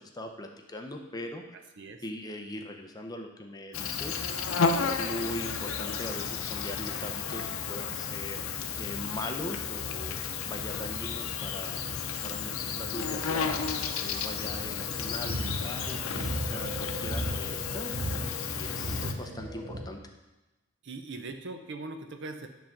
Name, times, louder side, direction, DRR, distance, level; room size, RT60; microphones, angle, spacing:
voice 1, 0.1-1.4 2.0-4.2 4.5-8.4 8.8-10.2 10.4-11.8 12.2-13.6 14.0-18.1 18.4-20.0, left 1 dB, 20° left, 4 dB, 0.7 m, -40 dB
Insect, 3.7-19.1, left 6 dB, 85° left, 0.6 m, -33 dB
sound 1, 9.4-19.8, equal, 35° right, 1.2 m, -38 dB
voice 2, 18.7-19.1 20.8-22.5, right 3 dB, 60° right, 6 dB, 0.7 m, -41 dB
10.5 x 3.7 x 5.9 m, 1.1 s
head